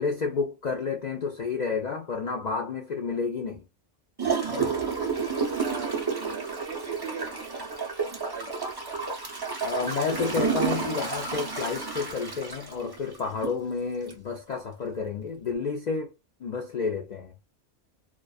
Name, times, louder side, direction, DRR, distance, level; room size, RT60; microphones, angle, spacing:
voice 1, 0.0-3.6 9.6-16.1 16.4-17.3, left 5 dB, 60° left, 0.4 m, -30 dB
Gurgling / Toilet flush, 4.2-13.6 14.1-14.2, right 5 dB, 30° right, 0.4 m, -30 dB
voice 2, 5.5-8.5, right 8 dB, 60° right, 0.7 m, -41 dB
2.5 x 2.2 x 2.3 m
omnidirectional pair, 1.2 m